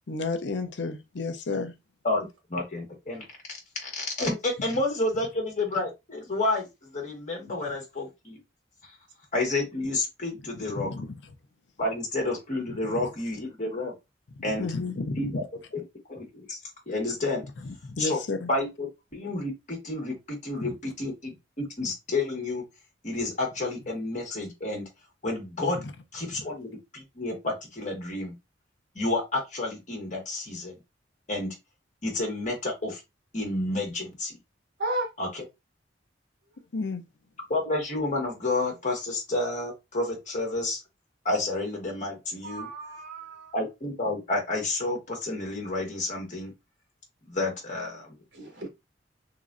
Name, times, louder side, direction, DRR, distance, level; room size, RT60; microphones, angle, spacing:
voice 1, 0.1-1.7 10.8-11.1 12.9-13.0 14.6-15.4 17.8-18.5 20.6-20.8 25.7-25.9 36.7-37.0, left 3 dB, 70° left, 0.6 m, -31 dB
voice 2, 2.0-3.2 3.8-8.4 9.3-10.9 11.8-13.9 14.4-14.7 15.2-15.4 15.7-15.8 16.1-16.6 16.9-17.5 18.0-18.2 18.5-22.6 23.0-24.9 25.2-25.8 26.1-28.3 28.9-30.8 31.3-31.5 32.0-33.0 33.3-34.4 35.2-35.3 37.5-40.8 41.2-42.7 43.5-46.5 47.2-48.1, left 2 dB, 45° left, 1.5 m, -30 dB
voice 3, 42.4-43.6 48.3-48.7, right 1 dB, 75° right, 1.3 m, -33 dB
3.7 x 3.0 x 2.5 m
head